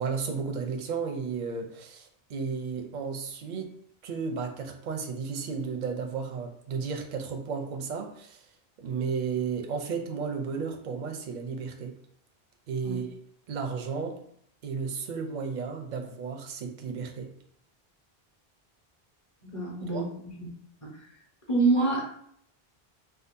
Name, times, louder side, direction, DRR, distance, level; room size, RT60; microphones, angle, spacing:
voice 1, 0.0-3.7 4.0-8.5 8.8-12.0 12.7-13.1 13.5-14.2 14.6-17.3 19.9-20.1, right 5 dB, 55° right, 3 dB, 0.6 m, -33 dB
voice 2, 19.4-20.5 20.8-20.9 21.5-22.0, right 3 dB, 35° left, -4 dB, 1.0 m, -27 dB
3.8 x 2.3 x 2.5 m, 0.68 s
omnidirectional pair, 1.0 m